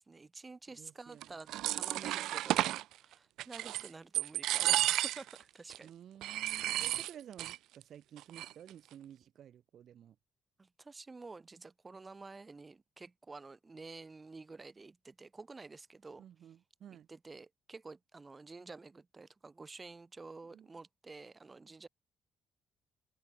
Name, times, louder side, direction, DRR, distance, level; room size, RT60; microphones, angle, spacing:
voice 1, 0.0-5.9 10.6-16.2 17.1-21.9, right 3 dB, 25° right, 5.3 m, -50 dB
voice 2, 0.8-1.4 5.8-10.2 16.2-17.1 20.5-20.7, right 10 dB, 65° right, 6.3 m, -53 dB
sound 1, 1.2-2.8 3.4-3.9 4.1-5.4 5.7-5.8 6.2-7.6 7.8-7.9 8.2-8.7, right 15 dB, 90° right, 0.7 m, -32 dB
open air
cardioid pair, 90°, 0 cm